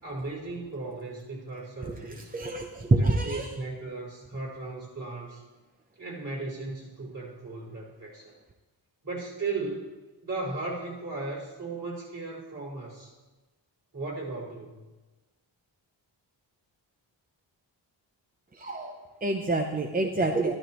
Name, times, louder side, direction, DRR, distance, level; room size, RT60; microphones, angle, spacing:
voice 1, 0.0-2.3 2.9-5.4 6.0-8.3 9.0-9.8 10.2-13.1 13.9-14.7, right 3 dB, 45° right, -6 dB, 4.7 m, -36 dB
voice 2, 2.3-3.5 18.5-20.5, right 2 dB, 20° right, 2 dB, 0.7 m, -27 dB
13.5 x 13.0 x 3.1 m, 1.2 s
wide cardioid pair, 100°, 45 cm